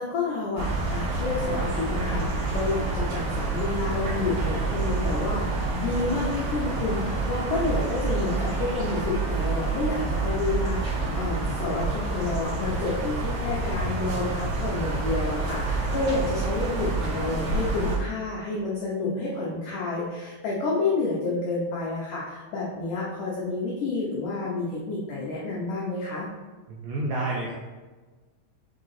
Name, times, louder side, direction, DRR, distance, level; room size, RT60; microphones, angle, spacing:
voice 1, 0.0-26.3, left 3 dB, 80° left, -5 dB, 1.8 m, -29 dB
sound 1, 0.6-18.0, right 3 dB, 50° right, 2.6 m, -28 dB
voice 2, 26.7-27.5, right 2 dB, 80° right, -4 dB, 2.0 m, -29 dB
7.0 x 3.9 x 4.1 m, 1.3 s
omnidirectional pair, 5.0 m